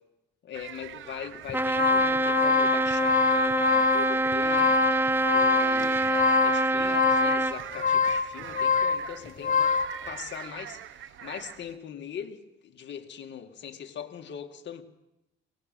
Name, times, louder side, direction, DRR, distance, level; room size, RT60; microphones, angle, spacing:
voice 1, 0.4-4.8 5.3-9.8 10.1-14.8, left 8 dB, 65° left, 2.2 m, -41 dB
sound 1, 0.5-11.8, right 11 dB, 75° right, 1.0 m, -43 dB
sound 2, 1.5-10.0, left 6 dB, 40° left, 1.1 m, -25 dB
Trumpet, 1.5-7.6, right 2 dB, 10° right, 0.8 m, -25 dB
23.5 x 20.0 x 7.7 m
cardioid pair, 90°, 20 cm